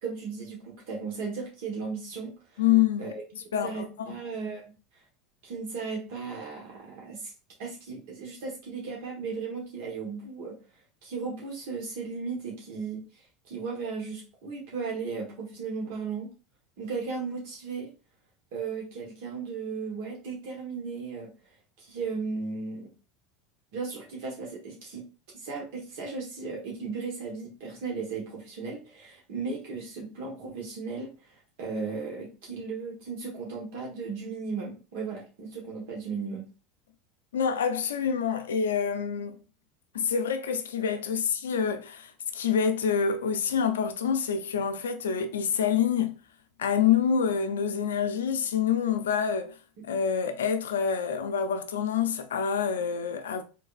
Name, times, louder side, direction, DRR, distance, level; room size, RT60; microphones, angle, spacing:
voice 1, 0.0-2.6 3.0-3.2 3.6-4.7 5.4-7.3 7.6-10.6 11.0-13.0 13.5-16.3 16.8-17.9 18.5-21.3 21.8-22.9 23.7-25.1 25.3-36.5 49.8-49.9, right 4 dB, 70° right, 1.2 m, -36 dB
voice 2, 2.6-3.1 3.5-4.2 37.3-39.4 39.9-46.1 46.6-49.6 49.9-53.4, left 7 dB, 85° left, 0.5 m, -27 dB
3.8 x 3.2 x 2.4 m
hypercardioid pair, 90°, 0 cm